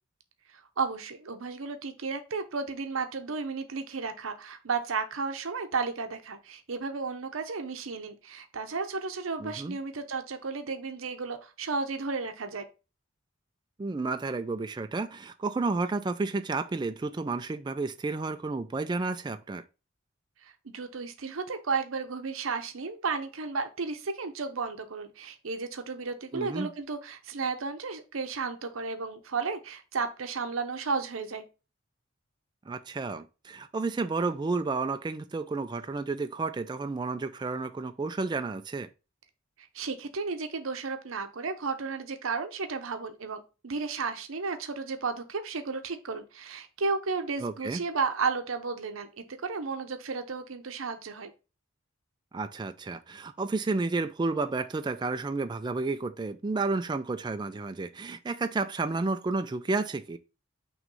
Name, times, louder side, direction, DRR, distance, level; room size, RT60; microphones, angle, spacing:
voice 1, 0.5-12.7 20.4-31.4 39.7-51.3, right 4 dB, 90° right, 0.8 m, -33 dB
voice 2, 9.4-9.8 13.8-19.6 26.3-26.7 32.7-38.9 47.4-47.8 52.3-60.2, right 3 dB, 20° right, 0.3 m, -31 dB
6.0 x 3.1 x 5.3 m
head